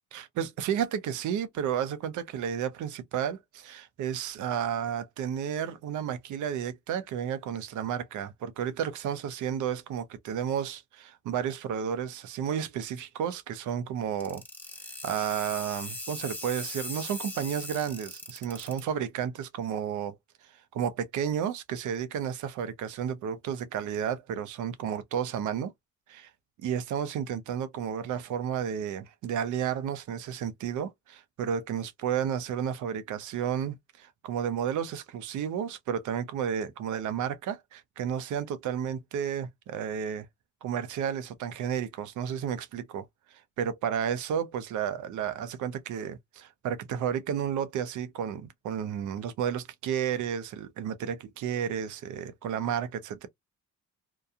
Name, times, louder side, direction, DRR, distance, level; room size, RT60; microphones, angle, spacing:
voice 1, 0.1-14.4 15.0-20.2 20.7-25.7 26.1-26.3 26.6-40.3 40.6-43.0 43.6-53.3, right 8 dB, 80° right, 0.7 m, -32 dB
sound 1, 14.2-18.8, left 1 dB, 5° left, 1.1 m, -39 dB
2.8 x 2.2 x 2.4 m
cardioid pair, 90°, 30 cm